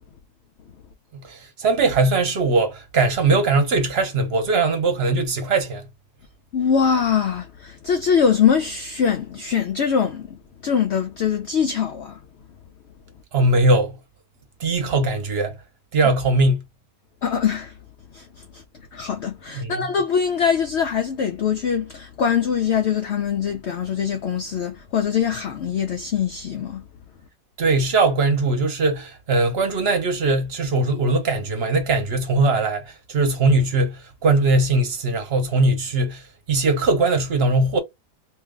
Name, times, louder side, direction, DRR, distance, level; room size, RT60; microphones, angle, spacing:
voice 1, 1.1-5.9 13.3-14.0 14.6-15.5 15.9-16.6 19.5-19.9 27.6-37.8, right 2 dB, 45° right, 1.0 m, -20 dB
voice 2, 6.5-10.3 10.6-12.2 17.2-17.7 18.1-18.2 18.5-18.6 18.9-26.8, left 7 dB, 75° left, 0.6 m, -22 dB
2.7 x 2.6 x 3.5 m
omnidirectional pair, 1.7 m